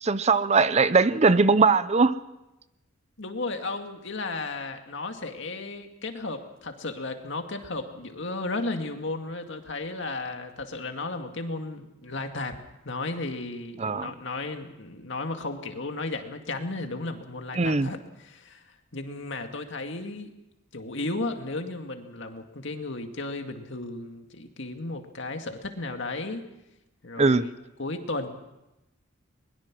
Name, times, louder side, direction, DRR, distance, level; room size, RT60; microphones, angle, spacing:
voice 1, 0.0-2.2 13.8-14.1 17.6-17.9 27.2-27.4, right 4 dB, 35° right, 14 dB, 0.6 m, -20 dB
voice 2, 3.2-18.6 18.9-20.3 20.7-26.4 27.0-27.5 27.8-28.3, left 2 dB, 65° left, 5 dB, 2.2 m, -34 dB
22.0 x 21.5 x 6.2 m, 0.93 s
head